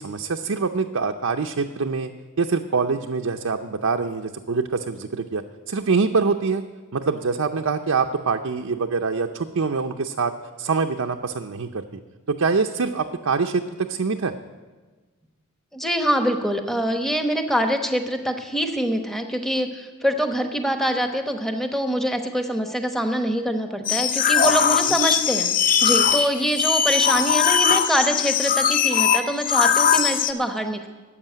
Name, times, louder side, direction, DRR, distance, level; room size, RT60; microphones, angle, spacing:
voice 1, 0.0-2.1 2.4-6.6 6.9-10.3 10.6-11.8 12.3-14.3, right 4 dB, 70° right, 4 dB, 0.6 m, -24 dB
voice 2, 15.7-25.5 25.8-30.9, equal, ahead, 5 dB, 1.0 m, -24 dB
sound 1, 23.8-30.3, left 7 dB, 40° left, 0.6 m, -20 dB
13.0 x 8.2 x 9.1 m, 1.3 s
head